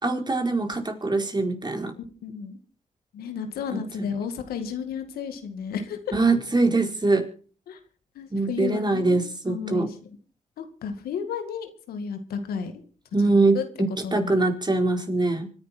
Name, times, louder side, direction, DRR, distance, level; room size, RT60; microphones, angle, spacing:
voice 1, 0.0-1.9 3.7-4.1 6.1-7.3 8.3-9.9 13.1-15.5, right 3 dB, 30° right, 4 dB, 4.5 m, -23 dB
voice 2, 2.0-2.6 3.1-6.2 7.7-7.8 8.2-9.9 10.6-12.7 13.5-13.6 14.0-14.5, left 6 dB, 90° left, 7 dB, 2.2 m, -33 dB
25.5 x 10.5 x 4.5 m, 0.41 s
supercardioid pair, 45°, 15 cm